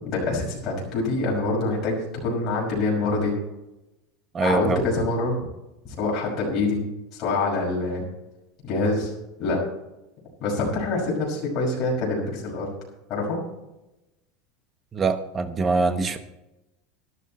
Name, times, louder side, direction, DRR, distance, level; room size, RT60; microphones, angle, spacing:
voice 1, 0.0-3.3 4.4-5.4 6.0-6.8 7.1-8.0 8.6-9.1 9.4-9.6 10.4-12.7 13.1-13.4, left 3 dB, 40° left, -3 dB, 5.9 m, -25 dB
voice 2, 4.3-4.9 14.9-16.2, right 4 dB, 20° right, 10 dB, 1.1 m, -24 dB
12.5 x 12.0 x 4.3 m, 0.95 s
supercardioid pair, 150°, 0 cm